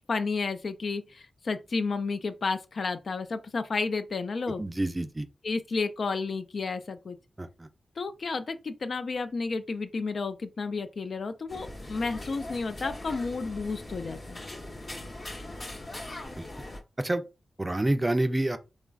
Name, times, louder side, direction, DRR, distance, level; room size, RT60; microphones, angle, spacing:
voice 1, 0.1-4.6 5.4-7.2 8.0-14.4, left 4 dB, 65° left, 0.3 m, -31 dB
voice 2, 4.6-5.3 7.4-7.7 16.4-16.5 17.0-17.2 17.6-18.6, right 1 dB, 25° right, 0.4 m, -28 dB
sound 1, 11.5-16.8, left 1 dB, 45° left, 0.9 m, -40 dB
3.0 x 2.4 x 2.3 m
cardioid pair, 40°, 0 cm